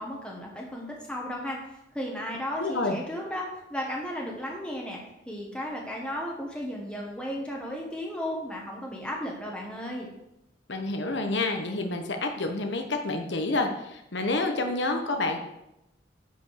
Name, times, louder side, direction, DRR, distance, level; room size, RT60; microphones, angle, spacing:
voice 1, 0.0-1.6 1.9-5.0 5.3-10.1, equal, 5° left, -2 dB, 1.4 m, -34 dB
voice 2, 2.6-3.0 10.7-15.4, left 2 dB, 65° left, 4 dB, 1.1 m, -28 dB
10.5 x 5.3 x 6.4 m, 0.87 s
head